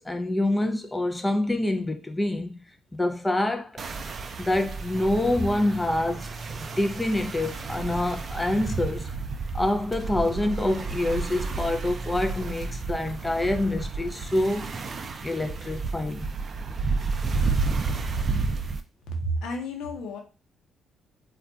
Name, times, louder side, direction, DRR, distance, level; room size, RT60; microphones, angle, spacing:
voice 1, 0.0-2.6 2.9-3.8 4.4-9.1 9.5-14.7 15.2-16.3, left 1 dB, 15° left, 0.5 m, -26 dB
sound 1, 3.8-18.8, right 4 dB, 40° right, 0.4 m, -31 dB
voice 2, 19.1-20.2, right 1 dB, 85° left, 0.7 m, -31 dB
2.3 x 2.2 x 3.8 m
cardioid pair, 90°, 0 cm